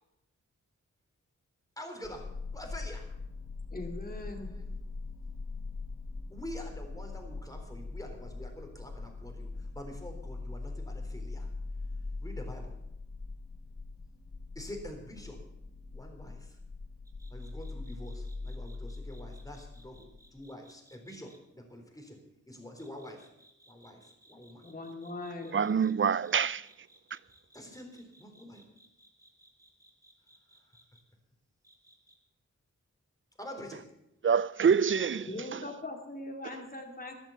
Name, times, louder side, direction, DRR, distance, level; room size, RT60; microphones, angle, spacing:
voice 1, 1.8-3.2 4.1-4.8 6.3-11.5 12.2-12.7 14.6-15.5 15.9-16.6 17.3-23.3 23.7-24.7 25.1-25.8 27.5-28.6 30.7-30.8 33.4-33.9 35.1-35.3, equal, 10° left, 3.9 m, -46 dB
sound 1, 2.0-20.4, left 3 dB, 60° left, 3.3 m, -41 dB
voice 2, 3.7-4.6 24.6-25.5 35.3-37.2, left 2 dB, 30° left, 2.4 m, -41 dB
sound 2, 17.1-21.4 22.8-31.0 31.6-32.2, right 1 dB, 10° right, 2.4 m, -61 dB
voice 3, 25.5-26.7 27.1-27.2 34.2-35.6, right 6 dB, 45° right, 0.4 m, -26 dB
13.5 x 11.0 x 7.2 m
wide cardioid pair, 85°, 30 cm